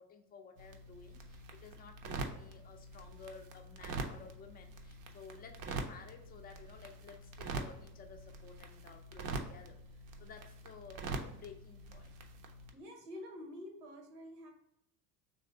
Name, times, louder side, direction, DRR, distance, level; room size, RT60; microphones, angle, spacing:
voice 1, 0.0-12.1, left 5 dB, 20° left, 4 dB, 0.5 m, -54 dB
sound 1, 0.6-12.7, right 3 dB, 40° right, 0.6 m, -44 dB
voice 2, 12.7-14.5, left 1 dB, 70° right, 4 dB, 1.0 m, -48 dB
3.1 x 2.7 x 3.8 m, 0.78 s
figure-of-eight pair, 70°, 50 cm